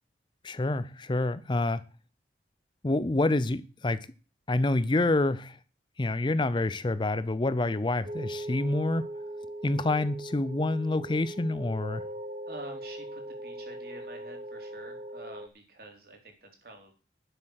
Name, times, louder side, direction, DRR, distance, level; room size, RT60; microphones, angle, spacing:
voice 1, 0.4-1.8 2.8-4.1 4.5-5.6 6.0-9.1 9.6-12.1, left 2 dB, 25° left, 0.5 m, -27 dB
sound 1, 7.5-15.5, right 1 dB, 35° right, 0.8 m, -40 dB
voice 2, 12.5-16.9, right 1 dB, 60° right, 3.8 m, -48 dB
11.5 x 7.7 x 6.5 m
head